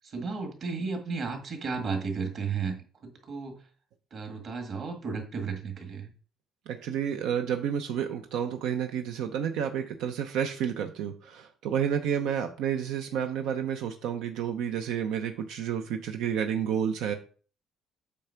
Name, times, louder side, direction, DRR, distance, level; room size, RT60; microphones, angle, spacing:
voice 1, 0.0-3.6 4.1-6.1, right 5 dB, 40° right, 4 dB, 1.8 m, -34 dB
voice 2, 6.7-17.1, right 8 dB, 85° right, 6 dB, 0.7 m, -30 dB
8.4 x 3.4 x 5.8 m, 0.39 s
cardioid pair, 160°, 0 cm